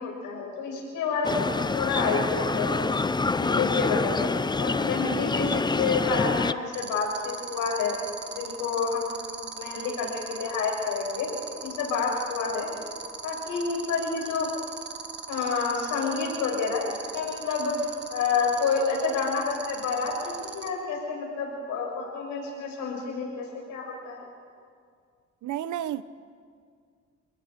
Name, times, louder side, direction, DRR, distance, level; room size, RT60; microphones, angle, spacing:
voice 1, 0.0-2.8 3.2-4.3 4.6-8.0 8.3-9.2 9.5-11.3 11.6-12.7 13.2-14.5 15.3-24.3, left 5 dB, 85° left, 7.0 m, -29 dB
sound 1, 1.2-6.5, left 3 dB, 15° left, 0.6 m, -26 dB
sound 2, 6.7-20.7, right 6 dB, 35° right, 1.8 m, -38 dB
voice 2, 25.4-26.0, right 11 dB, 75° right, 0.9 m, -31 dB
29.5 x 19.5 x 5.2 m
cardioid pair, 90°, 30 cm